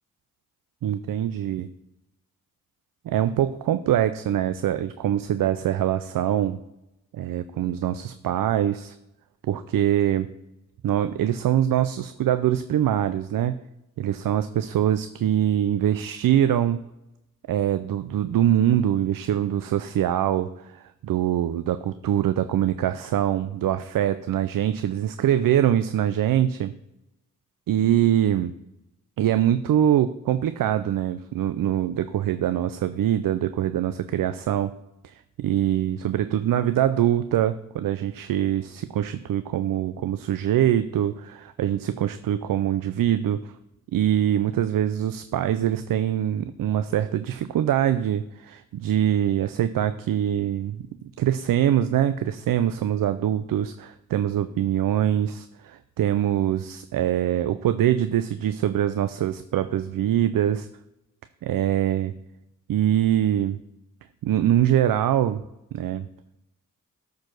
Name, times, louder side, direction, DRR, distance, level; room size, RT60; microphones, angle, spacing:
voice 1, 0.8-1.7 3.0-6.6 7.1-8.9 9.4-10.3 10.8-13.6 14.0-16.9 17.5-26.7 27.7-28.5 29.2-34.7 35.0-43.6 43.9-50.9 51.2-60.7 61.4-62.1 62.7-63.6 64.2-65.4 65.7-66.1, right 11 dB, 80° right, 11 dB, 0.6 m, -23 dB
13.0 x 4.8 x 6.1 m, 0.91 s
cardioid pair, 50°, 33 cm